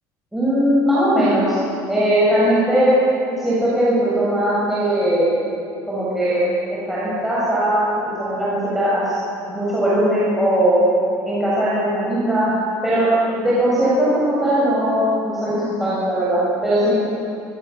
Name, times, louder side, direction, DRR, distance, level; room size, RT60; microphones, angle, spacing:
voice 1, 0.3-1.6 1.9-2.9 3.4-5.3 5.9-6.4 6.7-7.8 8.2-9.2 9.5-10.8 11.2-12.5 12.8-17.0, right 1 dB, 5° right, -9 dB, 7.4 m, -19 dB
29.0 x 25.5 x 7.2 m, 2.8 s
cardioid pair, 155°, 8 cm